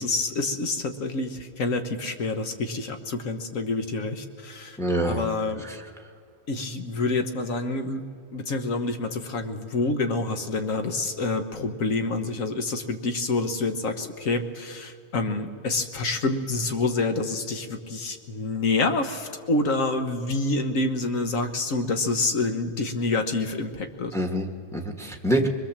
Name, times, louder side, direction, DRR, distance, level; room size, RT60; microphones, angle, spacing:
voice 1, 0.0-4.8 5.0-5.6 6.5-8.0 8.3-24.1, left 3 dB, 55° left, 7 dB, 1.6 m, -27 dB
voice 2, 4.8-5.2 5.7-5.8 24.1-25.5, right 1 dB, ahead, 3 dB, 1.4 m, -26 dB
24.0 x 21.5 x 7.4 m, 2.2 s
omnidirectional pair, 1.7 m